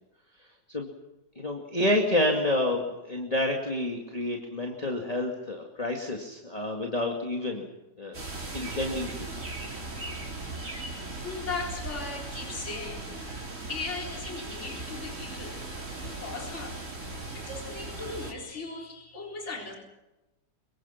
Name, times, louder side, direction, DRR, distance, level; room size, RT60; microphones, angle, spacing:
voice 1, 1.4-7.6 8.0-8.2 8.5-9.3, left 1 dB, 20° left, 1 dB, 2.3 m, -29 dB
sound 1, 8.1-18.3, right 2 dB, 45° right, 4.7 m, -38 dB
voice 2, 11.2-13.3 13.7-15.5 16.0-16.8 17.3-19.8, left 3 dB, 40° left, 0 dB, 4.6 m, -38 dB
26.0 x 23.5 x 5.9 m, 1.0 s
omnidirectional pair, 1.9 m